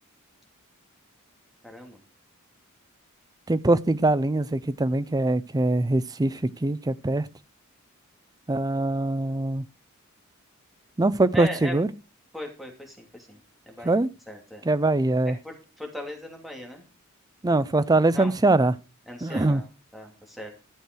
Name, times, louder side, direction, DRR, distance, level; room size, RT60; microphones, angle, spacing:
voice 1, 1.6-2.0 11.3-11.8 12.3-13.4 13.7-14.0 14.3-14.6 15.4-16.9 18.1-18.3 19.1-19.7 19.9-20.5, left 1 dB, ahead, 2.7 m, -38 dB
voice 2, 3.5-7.3 8.5-9.6 11.0-11.9 13.8-14.1 14.7-15.4 17.4-18.7 19.2-19.6, right 2 dB, 15° right, 0.5 m, -22 dB
12.0 x 6.5 x 4.5 m
head